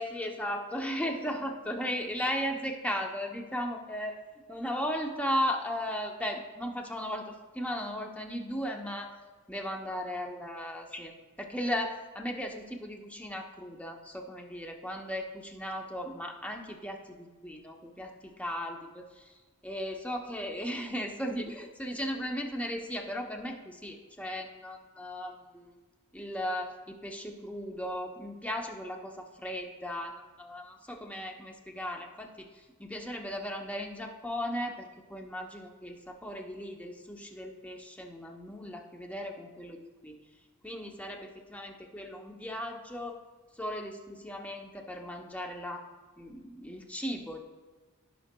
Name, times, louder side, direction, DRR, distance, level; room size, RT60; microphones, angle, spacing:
voice 1, 0.0-4.2 4.5-9.2 9.5-11.1 11.4-19.3 19.6-25.8 26.1-40.2 40.6-43.2 43.6-45.8 46.2-47.4, equal, 5° left, 2 dB, 0.7 m, -36 dB
13.5 x 5.7 x 2.2 m, 1.3 s
head